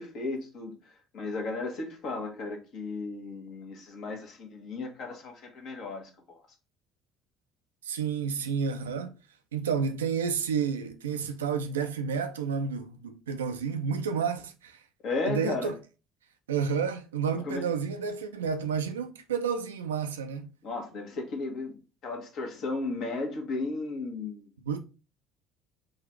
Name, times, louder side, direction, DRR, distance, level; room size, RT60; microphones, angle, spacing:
voice 1, 0.0-6.4 15.0-15.7 17.4-17.6 20.6-21.8 22.0-24.5, left 3 dB, 55° left, 1.1 m, -35 dB
voice 2, 7.8-9.1 9.5-14.8 15.3-15.7 16.5-20.5 24.7-24.8, right 6 dB, 80° right, 0.4 m, -30 dB
3.8 x 2.5 x 4.4 m
figure-of-eight pair, 55°, 0 cm